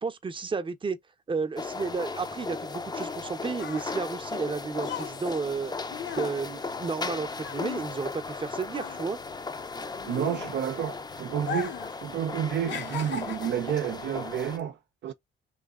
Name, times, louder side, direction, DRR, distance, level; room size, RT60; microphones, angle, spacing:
voice 1, 0.0-1.0 1.3-5.7 6.2-9.2, right 4 dB, 25° right, 0.7 m, -32 dB
sound 1, 1.6-14.6, left 4 dB, 20° left, 0.5 m, -37 dB
sound 2, 3.1-8.4 8.7-10.9 11.4-12.0 12.2-13.7 14.4-14.6, left 7 dB, 65° left, 0.8 m, -38 dB
voice 2, 10.1-15.1, right 9 dB, 65° right, 0.5 m, -30 dB
3.2 x 2.8 x 3.7 m
cardioid pair, 90°, 20 cm